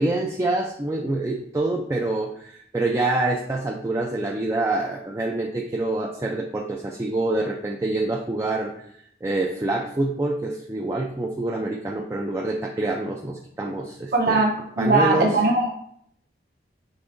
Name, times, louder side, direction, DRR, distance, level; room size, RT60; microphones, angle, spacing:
voice 1, 0.0-8.7 9.2-14.4 14.8-15.3, right 2 dB, 15° right, 0 dB, 0.3 m, -26 dB
voice 2, 14.1-15.7, right 2 dB, 55° right, 0 dB, 0.8 m, -20 dB
5.3 x 3.3 x 2.5 m, 0.68 s
head